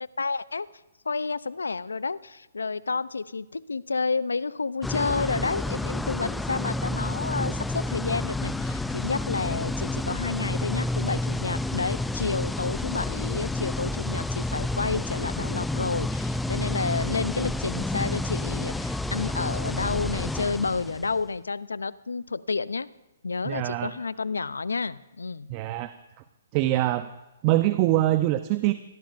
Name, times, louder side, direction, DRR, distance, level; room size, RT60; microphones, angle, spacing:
voice 1, 0.2-0.7 1.0-22.9 23.2-25.6, left 4 dB, 90° left, 19 dB, 0.5 m, -30 dB
sound 1, 4.8-21.2, left 2 dB, 5° left, 0.4 m, -30 dB
voice 2, 23.4-23.9 25.5-25.9 26.5-27.1 27.4-28.7, right 15 dB, 35° right, 11 dB, 0.6 m, -23 dB
24.0 x 16.5 x 2.5 m, 1.0 s
hypercardioid pair, 135°, 0 cm